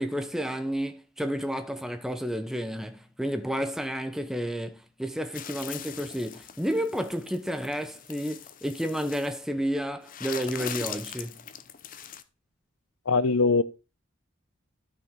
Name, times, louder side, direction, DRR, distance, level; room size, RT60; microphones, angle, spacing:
voice 1, 0.0-11.5, equal, ahead, 0.7 m, -31 dB
sound 1, 5.3-9.4 10.0-12.2, left 8 dB, 40° left, 0.6 m, -41 dB
voice 2, 13.1-13.6, left 4 dB, 85° left, 0.7 m, -21 dB
12.5 x 5.0 x 3.7 m
head